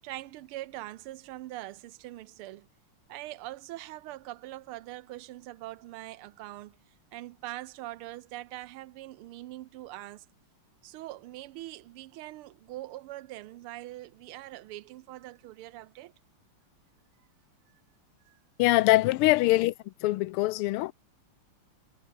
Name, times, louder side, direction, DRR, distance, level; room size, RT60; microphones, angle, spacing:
voice 1, 0.0-2.7 3.1-10.3 10.8-16.1 18.2-18.4, right 16 dB, 90° right, 1.6 m, -43 dB
voice 2, 18.6-19.7 20.0-20.9, left 18 dB, 90° left, 1.5 m, -23 dB
omnidirectional pair, 2.4 m